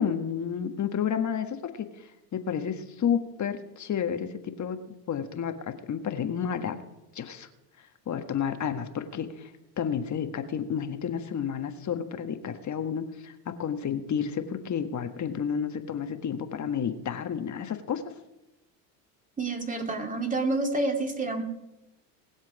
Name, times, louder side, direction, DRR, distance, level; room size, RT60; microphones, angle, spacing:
voice 1, 0.0-4.8 5.1-6.8 7.1-7.5 7.8-9.5 9.8-18.0, left 7 dB, 35° left, 7 dB, 1.5 m, -31 dB
voice 2, 19.4-21.4, right 2 dB, 15° right, 3 dB, 2.6 m, -28 dB
20.0 x 7.4 x 4.9 m, 0.93 s
hypercardioid pair, 80°, 49 cm